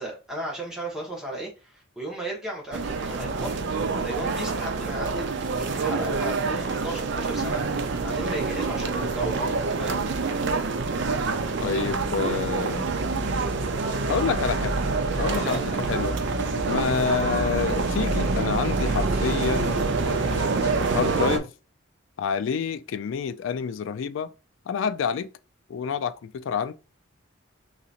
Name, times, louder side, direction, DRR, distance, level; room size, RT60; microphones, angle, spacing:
voice 1, 0.0-3.5 3.9-10.0 15.3-15.8, right 1 dB, 5° right, 1.1 m, -35 dB
sound 1, 2.7-21.4, right 4 dB, 60° right, 0.5 m, -27 dB
voice 2, 11.6-12.9 14.1-14.8 15.2-16.2 16.7-21.5 22.2-24.3 24.7-25.3 25.7-26.7, left 6 dB, 70° left, 0.3 m, -28 dB
sound 2, 12.9-15.6 15.9-20.9, equal, 15° left, 1.6 m, -34 dB
3.8 x 2.9 x 2.4 m
head